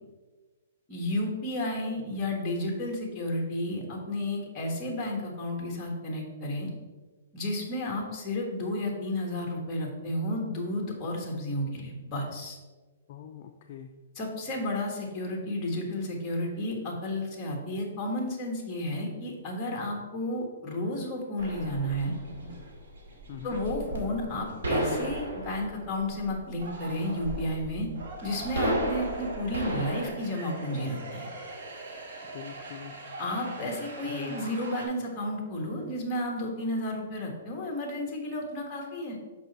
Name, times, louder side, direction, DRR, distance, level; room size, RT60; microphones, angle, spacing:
voice 1, 0.9-6.7 7.3-12.6 14.1-22.1 23.4-27.9 28.2-31.3 33.2-39.2, left 1 dB, 15° left, 0 dB, 1.3 m, -32 dB
voice 2, 13.1-13.9 23.3-23.6 32.3-33.0 34.1-34.4, left 10 dB, 40° left, 4 dB, 0.4 m, -42 dB
sound 1, 21.4-30.1, right 1 dB, 75° right, 2.2 m, -34 dB
sound 2, 22.3-22.7 23.1-24.6 25.0-25.9 26.5-34.9, right 2 dB, 55° right, 1.4 m, -42 dB
6.0 x 5.3 x 4.0 m, 1.3 s
hypercardioid pair, 165°, 0 cm